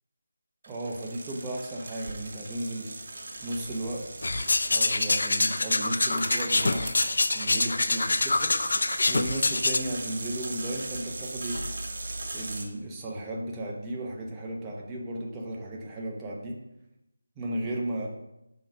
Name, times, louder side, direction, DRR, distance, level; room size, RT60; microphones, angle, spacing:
sound 1, 0.6-12.6, right 2 dB, 45° right, 1.1 m, -39 dB
voice 1, 0.7-3.1 3.4-4.1 4.7-6.9 7.3-11.7 12.3-16.6 17.4-18.2, right 1 dB, 15° right, -2 dB, 0.9 m, -35 dB
sound 2, 4.2-9.8, left 2 dB, 60° left, 0.4 m, -25 dB
5.8 x 4.0 x 5.1 m, 0.91 s
figure-of-eight pair, 160°, 0 cm